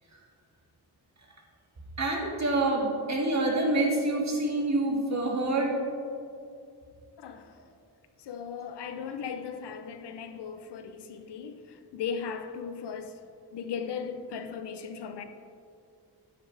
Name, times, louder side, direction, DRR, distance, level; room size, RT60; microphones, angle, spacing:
voice 1, 2.0-5.7, right 2 dB, 40° right, -1 dB, 1.9 m, -27 dB
voice 2, 7.2-7.5 8.2-13.2 13.5-15.2, left 6 dB, 80° left, 9 dB, 0.7 m, -37 dB
9.3 x 7.9 x 3.4 m, 2.4 s
cardioid pair, 80°, 40 cm